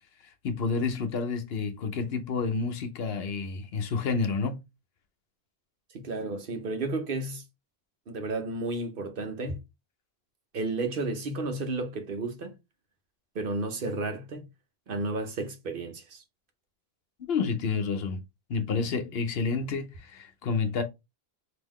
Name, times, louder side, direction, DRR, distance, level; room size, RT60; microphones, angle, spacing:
voice 1, 0.4-4.6 17.3-18.2 18.5-20.8, left 4 dB, 75° left, 0.9 m, -29 dB
voice 2, 5.9-7.4 8.1-9.6 10.5-12.6 13.3-14.4 14.9-16.2, right 2 dB, 60° right, 1.0 m, -32 dB
3.7 x 2.9 x 3.1 m
omnidirectional pair, 1.1 m